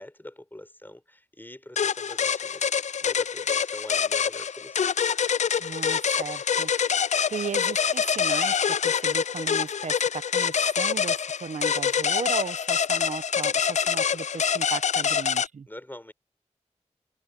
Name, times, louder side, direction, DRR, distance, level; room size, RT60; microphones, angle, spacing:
voice 1, 0.0-4.9 15.7-16.1, left 1 dB, 15° left, 5.7 m, -44 dB
sound 1, 1.8-15.5, left 7 dB, 70° left, 0.4 m, -25 dB
voice 2, 5.6-6.7 7.3-8.6 8.8-15.7, right 5 dB, 80° right, 1.1 m, -36 dB
cardioid pair, 50°, 12 cm